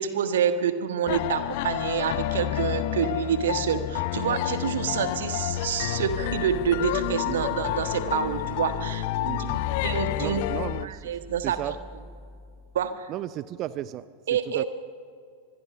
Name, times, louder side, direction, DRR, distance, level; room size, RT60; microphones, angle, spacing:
voice 1, 0.0-9.0 9.8-10.4 10.8-11.7 12.7-13.1 14.3-14.6, right 8 dB, 60° right, 10 dB, 1.4 m, -27 dB
sound 1, 1.1-10.9, left 14 dB, 50° left, 0.6 m, -29 dB
sound 2, 6.1-12.9, right 2 dB, 15° right, 1.4 m, -41 dB
voice 2, 9.2-9.6 10.2-11.2 11.4-11.8 13.1-14.6, right 13 dB, 35° right, 17 dB, 0.5 m, -34 dB
25.0 x 21.0 x 5.5 m, 2.3 s
figure-of-eight pair, 90°, 0 cm